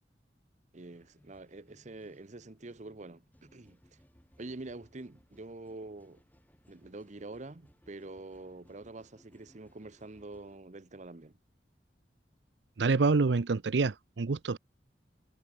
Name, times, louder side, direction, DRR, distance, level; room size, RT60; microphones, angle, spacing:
voice 1, 0.7-4.0 4.4-6.2 6.7-11.4, right 2 dB, 45° right, 0.9 m, -46 dB
sound 1, 0.8-10.6, equal, 10° left, 5.8 m, -65 dB
voice 2, 12.8-14.6, right 4 dB, 75° right, 0.6 m, -27 dB
head